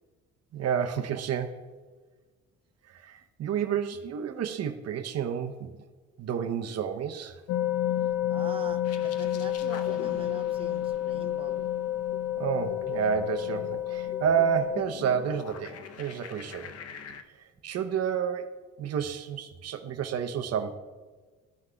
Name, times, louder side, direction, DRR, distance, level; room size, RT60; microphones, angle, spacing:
voice 1, 0.5-1.6 2.9-5.7 6.2-7.4 12.4-16.7 17.3-17.4 17.6-18.5 18.8-20.8, right 8 dB, 55° right, 7 dB, 0.7 m, -30 dB
sound 1, 7.5-14.8, left 12 dB, 90° left, 0.5 m, -30 dB
voice 2, 8.0-11.6, right 5 dB, 15° right, 6 dB, 0.7 m, -44 dB
sound 2, 8.8-17.2, left 7 dB, 50° left, 0.7 m, -45 dB
14.0 x 5.9 x 2.3 m, 1.4 s
cardioid pair, 90°, 31 cm